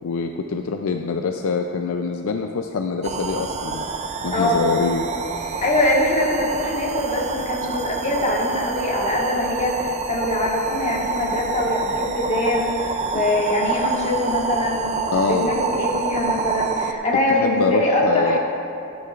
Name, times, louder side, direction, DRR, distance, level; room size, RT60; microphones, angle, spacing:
voice 1, 0.0-3.9 4.2-5.0 13.1-13.2 15.1-15.5 17.3-18.4, left 5 dB, 70° left, 4 dB, 0.4 m, -24 dB
sound 1, 3.0-16.9, right 5 dB, 30° right, 0.4 m, -27 dB
voice 2, 4.3-4.6 5.6-12.7 13.0-18.4, left 1 dB, 35° left, -3 dB, 1.6 m, -23 dB
14.0 x 9.5 x 2.5 m, 2.6 s
head